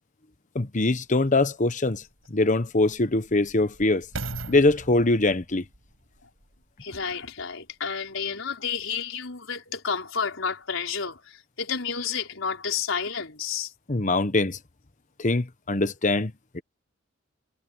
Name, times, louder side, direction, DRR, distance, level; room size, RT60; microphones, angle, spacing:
voice 1, 0.5-2.0 2.3-4.0 4.5-5.6 13.9-14.6 15.2-16.6, left 2 dB, 40° left, 1.1 m, -23 dB
sound 1, 1.2-1.3 1.9-7.2 7.9-8.0, right 2 dB, 85° right, 8.0 m, -41 dB
voice 2, 6.8-13.7, left 6 dB, 70° left, 4.6 m, -31 dB
head